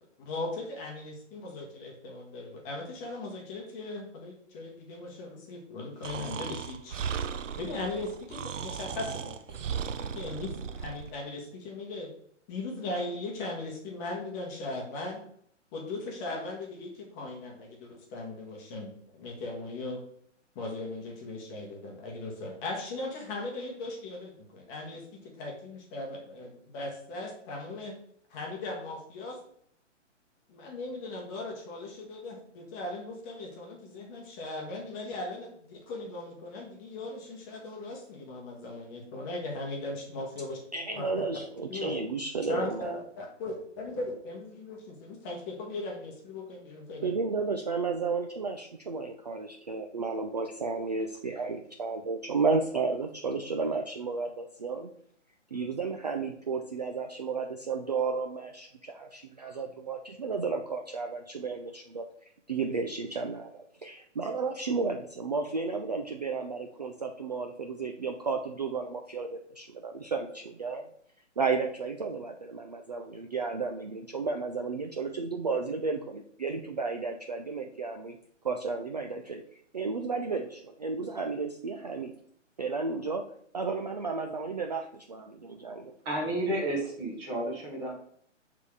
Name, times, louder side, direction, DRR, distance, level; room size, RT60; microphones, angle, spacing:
voice 1, 0.2-7.0 7.6-9.6 10.0-12.1 12.5-15.2 15.7-20.0 20.5-27.9 28.3-29.4 30.5-40.6 40.9-41.2 41.7-41.9 42.5-47.2, left 2 dB, 15° left, 0 dB, 1.0 m, -38 dB
Breathing, 6.0-11.1, right 7 dB, 80° right, 0.7 m, -36 dB
voice 2, 40.7-43.0 47.0-54.9 55.5-62.0 62.5-70.9 71.4-78.2 78.4-79.4 79.7-82.1 82.6-83.2 83.5-85.9, right 4 dB, 35° right, 3 dB, 0.4 m, -33 dB
voice 3, 86.0-87.9, right 1 dB, 10° right, -1 dB, 0.8 m, -31 dB
6.6 x 3.6 x 4.7 m, 0.65 s
hypercardioid pair, 160°, 37 cm